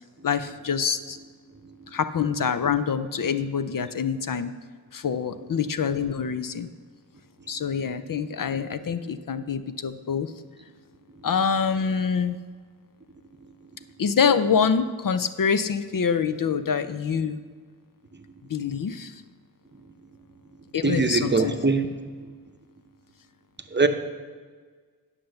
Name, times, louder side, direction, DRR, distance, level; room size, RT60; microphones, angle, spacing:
voice 1, 0.2-1.2 1.9-4.5 4.9-6.7 7.5-10.3 11.2-12.4 14.0-17.4 18.5-19.2 20.7-21.5, left 6 dB, 55° left, 11 dB, 0.5 m, -25 dB
voice 2, 20.8-21.8 23.7-23.9, right 4 dB, 30° right, 7 dB, 0.7 m, -21 dB
10.0 x 5.7 x 6.5 m, 1.5 s
wide cardioid pair, 70°, 39 cm